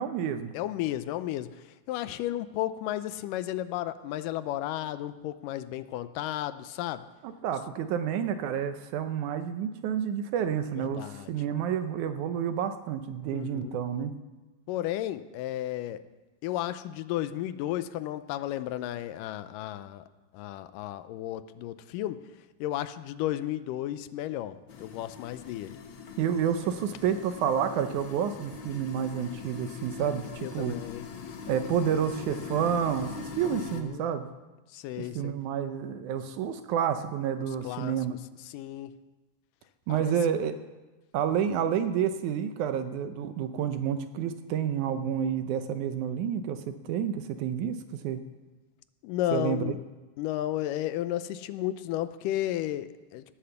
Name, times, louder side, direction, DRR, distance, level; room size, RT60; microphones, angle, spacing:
voice 1, 0.0-0.5 7.2-14.1 26.2-30.8 31.5-34.3 35.0-38.1 39.9-40.6 41.1-48.2 49.3-49.8, right 8 dB, 75° right, 9 dB, 2.0 m, -29 dB
voice 2, 0.5-7.0 10.9-11.3 13.3-13.7 14.7-16.0 16.4-20.0 20.3-22.2 22.6-25.8 30.4-31.1 33.5-34.0 34.7-35.3 37.6-38.0 38.5-38.9 39.9-40.1 49.0-49.8 50.2-53.2, left 13 dB, 80° left, 13 dB, 2.2 m, -33 dB
sound 1, 24.7-33.8, left 5 dB, 65° left, 1.3 m, -42 dB
17.5 x 8.7 x 6.9 m, 1.2 s
omnidirectional pair, 3.9 m